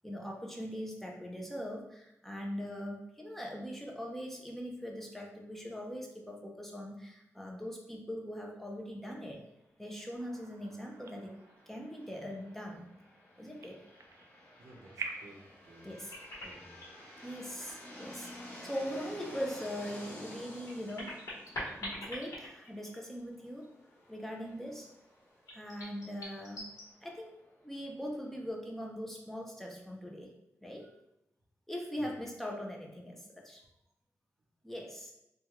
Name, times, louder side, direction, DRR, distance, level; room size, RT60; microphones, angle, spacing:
voice 1, 0.0-9.4 9.8-11.3 11.7-12.9 13.4-13.8 15.8-16.1 17.2-21.2 21.5-23.7 24.1-24.9 25.5-26.7 27.0-27.4 27.6-30.3 30.6-30.9 31.7-33.6 34.6-35.1, equal, 5° left, -1 dB, 0.5 m, -41 dB
sound 1, 10.2-15.5, right 4 dB, 60° right, 0.3 m, -48 dB
sound 2, 10.9-28.5, left 1 dB, 25° left, 0.8 m, -53 dB
voice 2, 14.6-15.9 16.4-16.8 32.0-32.2, right 1 dB, 80° right, -2 dB, 0.7 m, -54 dB
sound 3, 15.7-17.0 17.5-18.5 18.8-18.9 20.4-23.3 23.6-23.7 25.5-26.8, left 1 dB, 80° left, 1.2 m, -44 dB
3.4 x 2.3 x 2.9 m, 0.83 s
wide cardioid pair, 130°, 5 cm